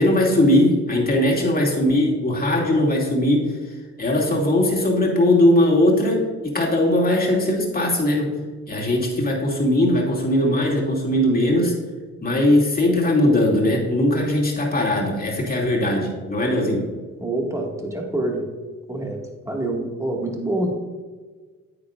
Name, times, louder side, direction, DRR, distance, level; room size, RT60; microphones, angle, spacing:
voice 1, 0.0-8.3 8.7-11.7 12.2-16.9, left 1 dB, 30° left, -2 dB, 2.6 m, -20 dB
voice 2, 17.2-18.4 18.9-20.7, right 1 dB, 10° right, 0 dB, 2.0 m, -26 dB
9.6 x 8.7 x 2.5 m, 1.4 s
cardioid pair, 90°, 30 cm